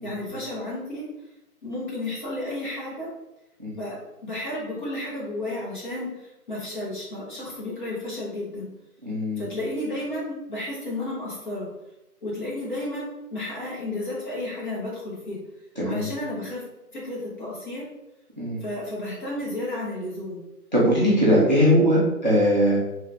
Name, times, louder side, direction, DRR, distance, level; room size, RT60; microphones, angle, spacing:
voice 1, 0.0-1.1 1.6-3.1 3.7-8.7 9.4-11.7 12.2-15.4 15.8-16.6 16.9-17.9 18.6-20.4, left 1 dB, 30° left, -5 dB, 1.1 m, -32 dB
voice 2, 9.0-9.4 15.8-16.0 18.4-18.6 20.7-22.8, equal, 30° right, -6 dB, 0.4 m, -20 dB
3.1 x 2.3 x 3.3 m, 0.92 s
hypercardioid pair, 160°, 46 cm